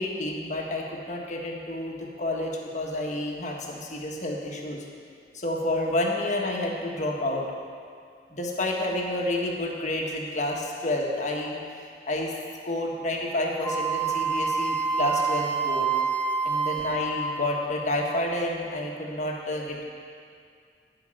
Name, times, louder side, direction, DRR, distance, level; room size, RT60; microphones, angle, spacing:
voice 1, 0.0-4.8 5.3-7.4 8.3-11.6 12.0-12.3 12.6-15.9 16.4-19.8, left 1 dB, 45° left, -1 dB, 1.6 m, -29 dB
Wind instrument woodwind instrument, 13.6-17.8, right 5 dB, 10° left, 0.6 m, -27 dB
13.0 x 5.6 x 9.0 m, 2.2 s
head